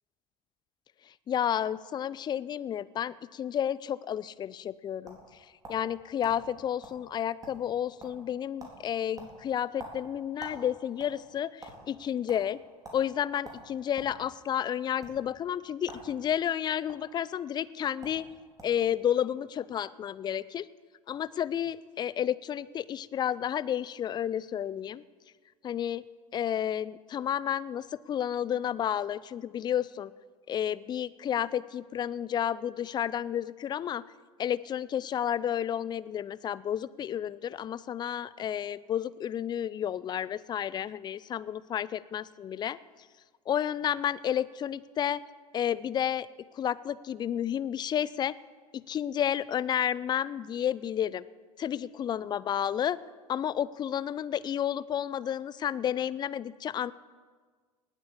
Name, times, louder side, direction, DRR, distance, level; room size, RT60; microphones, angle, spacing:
voice 1, 1.3-5.2 5.7-12.6 12.9-18.3 18.6-20.7 21.1-25.0 25.6-26.0 26.3-30.1 30.5-34.0 34.4-42.8 43.5-45.2 45.5-46.3 46.5-48.3 48.7-51.2 51.6-53.0 53.3-56.9, left 10 dB, 20° left, 19 dB, 0.4 m, -31 dB
sound 1, 4.6-5.9 6.2-6.4 6.8-7.0 7.3-7.7 8.0-8.3 8.6-8.8 9.2-10.6 10.9-11.8 12.3-12.4 12.8-13.0 13.4-14.2 14.9-15.1 15.8-16.1 16.4-17.0 17.7-17.8 18.0-18.2 18.6-18.8, right 2 dB, 20° right, 3.9 m, -46 dB
19.0 x 8.2 x 7.1 m, 1.5 s
figure-of-eight pair, 80°, 19 cm